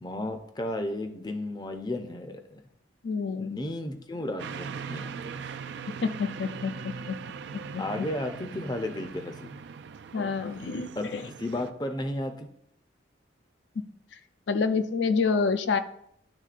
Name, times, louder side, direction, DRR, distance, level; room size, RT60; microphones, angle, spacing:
voice 1, 0.0-2.6 3.4-5.6 7.8-9.6 11.0-11.1 11.4-12.5, left 1 dB, 20° left, 6 dB, 0.5 m, -34 dB
voice 2, 3.0-3.6 6.0-7.2 7.7-8.0 10.1-11.2 14.5-15.8, left 4 dB, 70° left, 10 dB, 0.4 m, -28 dB
sound 1, 4.4-11.7, right 6 dB, 65° right, 0.3 m, -40 dB
10.5 x 3.6 x 2.5 m, 0.69 s
head